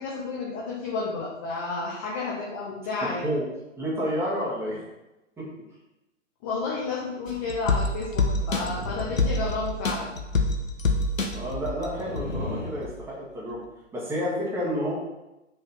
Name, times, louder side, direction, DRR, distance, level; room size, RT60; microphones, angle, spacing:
voice 1, 0.0-3.3 6.4-10.1, left 3 dB, 15° left, -3 dB, 0.5 m, -31 dB
voice 2, 3.0-3.5 3.8-4.8 5.4-5.5 11.2-13.6 13.9-14.9, equal, 5° right, -6 dB, 1.5 m, -30 dB
sound 1, 7.3-12.5 12.8-12.9, left 2 dB, 90° left, 1.0 m, -27 dB
sound 2, 8.3-10.0 11.8-12.8, left 2 dB, 70° left, 1.6 m, -37 dB
5.1 x 3.8 x 5.7 m, 0.98 s
figure-of-eight pair, 125°, 38 cm